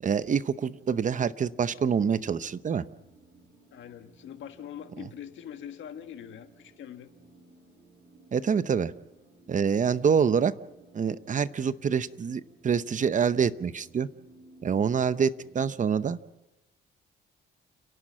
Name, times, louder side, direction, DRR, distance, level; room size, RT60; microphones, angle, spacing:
voice 1, 0.0-2.9 5.0-5.1 8.3-8.9 9.5-10.5 10.9-14.1 14.6-16.2, right 6 dB, 40° right, 14 dB, 0.8 m, -26 dB
sound 1, 0.5-15.8, right 2 dB, 60° right, 6.6 m, -58 dB
voice 2, 3.7-7.1, left 9 dB, 75° left, 7 dB, 1.7 m, -43 dB
30.0 x 11.5 x 7.5 m, 1.0 s
cardioid pair, 90°, 20 cm